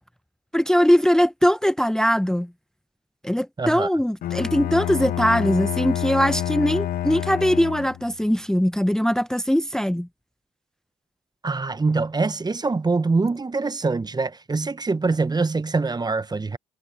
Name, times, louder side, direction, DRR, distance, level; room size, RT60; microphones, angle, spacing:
voice 1, 0.5-2.5 3.2-10.1, equal, 5° left, 0.9 m, -21 dB
voice 2, 3.6-3.9 11.4-16.6, right 3 dB, 25° right, 1.1 m, -24 dB
Bowed string instrument, 4.2-8.2, left 13 dB, 60° left, 0.8 m, -28 dB
hypercardioid pair, 50°, 17 cm